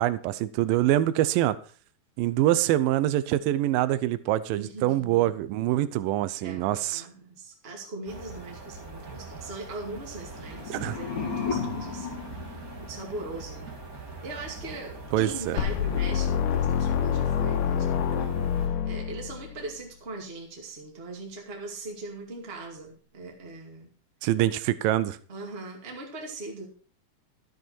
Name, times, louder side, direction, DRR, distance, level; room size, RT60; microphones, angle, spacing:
voice 1, 0.0-1.6 2.2-7.1 10.7-11.0 15.1-15.6 24.2-25.2, right 14 dB, 80° right, 15 dB, 2.2 m, -25 dB
voice 2, 4.6-5.3 6.4-12.4 12.8-13.8 14.2-23.9 25.3-26.7, right 2 dB, 20° right, 0 dB, 1.8 m, -40 dB
sound 1, 8.1-18.7, right 3 dB, 40° right, 1.2 m, -42 dB
sound 2, 10.2-13.3, left 5 dB, 55° left, 3.1 m, -34 dB
sound 3, 15.6-19.6, left 8 dB, 80° left, 2.9 m, -27 dB
12.5 x 8.0 x 4.4 m, 0.40 s
omnidirectional pair, 4.5 m